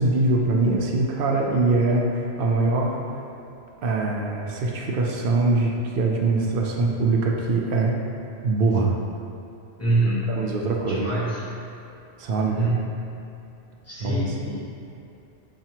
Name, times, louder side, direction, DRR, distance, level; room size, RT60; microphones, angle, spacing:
voice 1, 0.0-3.0 3.8-8.0 8.4-9.0 10.3-11.0 12.2-12.7 14.0-14.5, right 3 dB, 60° right, -1 dB, 0.6 m, -23 dB
voice 2, 9.8-10.3 10.9-11.4 12.4-12.9 13.9-14.6, right 2 dB, 15° left, -10 dB, 0.8 m, -25 dB
5.9 x 2.4 x 2.8 m, 2.7 s
omnidirectional pair, 1.2 m